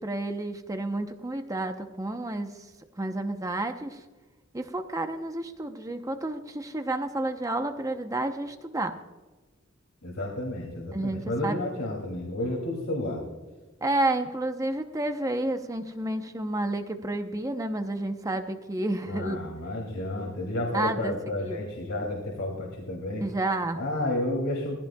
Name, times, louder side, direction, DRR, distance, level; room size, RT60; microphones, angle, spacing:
voice 1, 0.0-2.5 3.0-4.0 4.5-8.9 10.9-11.6 13.8-19.4 20.7-21.1 21.4-21.6 23.2-23.8, right 2 dB, 15° right, 6 dB, 0.7 m, -30 dB
voice 2, 10.0-13.2 19.1-23.2 23.7-24.8, left 1 dB, 75° left, -1 dB, 2.6 m, -31 dB
18.0 x 16.0 x 2.3 m, 1.2 s
head